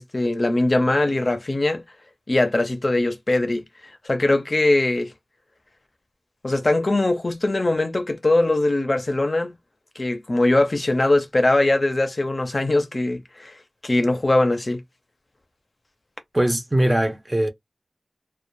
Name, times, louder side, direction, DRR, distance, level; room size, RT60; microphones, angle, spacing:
voice 1, 0.0-1.8 2.3-3.6 4.0-5.1 6.4-9.5 10.0-13.6 13.8-14.8, left 2 dB, 50° left, 0.5 m, -21 dB
voice 2, 16.3-17.5, right 1 dB, 25° right, 0.5 m, -21 dB
2.2 x 2.1 x 2.9 m
wide cardioid pair, 60°, 0 cm